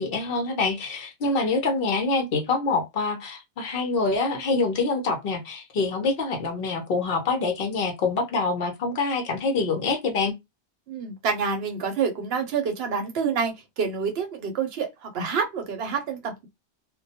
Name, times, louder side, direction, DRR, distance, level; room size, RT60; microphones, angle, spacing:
voice 1, 0.0-10.3, left 3 dB, 60° left, 0.8 m, -25 dB
voice 2, 10.9-16.5, right 6 dB, 70° right, 0.8 m, -28 dB
2.1 x 2.1 x 2.7 m
omnidirectional pair, 1.2 m